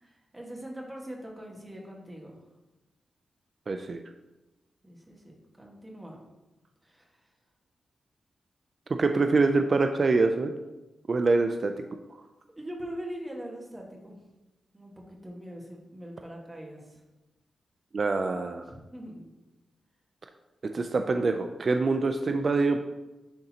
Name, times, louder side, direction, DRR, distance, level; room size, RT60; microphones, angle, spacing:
voice 1, 0.0-2.4 4.8-6.2 6.8-7.1 12.6-14.2 14.7-17.0 18.6-19.3, equal, 15° right, -1 dB, 1.5 m, -42 dB
voice 2, 3.7-4.0 9.0-10.5 11.1-11.7 17.9-18.7 20.7-22.8, right 3 dB, 50° right, 6 dB, 0.4 m, -25 dB
10.0 x 3.9 x 2.8 m, 1.0 s
cardioid pair, 85°, 0 cm